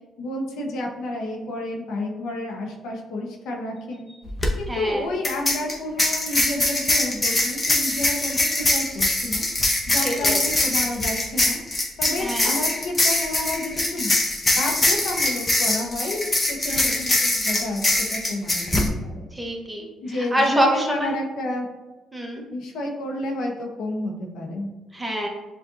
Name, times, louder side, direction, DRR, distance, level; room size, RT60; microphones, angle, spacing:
voice 1, 0.2-4.1 4.6-9.5 9.9-11.6 12.0-14.2 14.6-19.2 20.0-21.7 22.5-24.7, left 1 dB, 85° left, 1 dB, 0.8 m, -30 dB
sound 1, 4.3-4.5 5.2-18.9, left 2 dB, 20° left, 0.8 m, -23 dB
voice 2, 4.7-5.1 10.0-10.4 12.2-12.6 16.7-17.0 19.3-21.1 22.1-22.4 24.9-25.3, equal, 10° right, 0 dB, 1.0 m, -26 dB
7.1 x 2.5 x 2.6 m, 1.1 s
cardioid pair, 90°, 0 cm